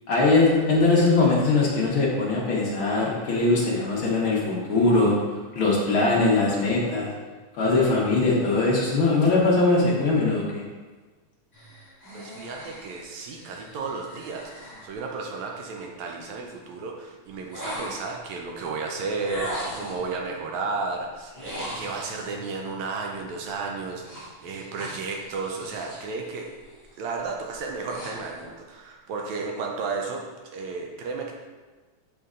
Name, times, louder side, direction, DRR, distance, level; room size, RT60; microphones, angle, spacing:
voice 1, 0.1-5.2 5.5-7.1 7.6-10.6, left 3 dB, 60° left, -4 dB, 1.4 m, -21 dB
sound 1, 11.5-15.7 17.5-18.3 19.3-20.1 21.3-22.4 24.0-26.1 26.5-26.9 27.4-28.5, equal, 10° left, 1.4 m, -39 dB
voice 2, 12.1-26.5 27.0-30.2 30.5-31.3, right 4 dB, 75° right, 1 dB, 1.8 m, -33 dB
6.8 x 5.3 x 3.7 m, 1.3 s
omnidirectional pair, 3.5 m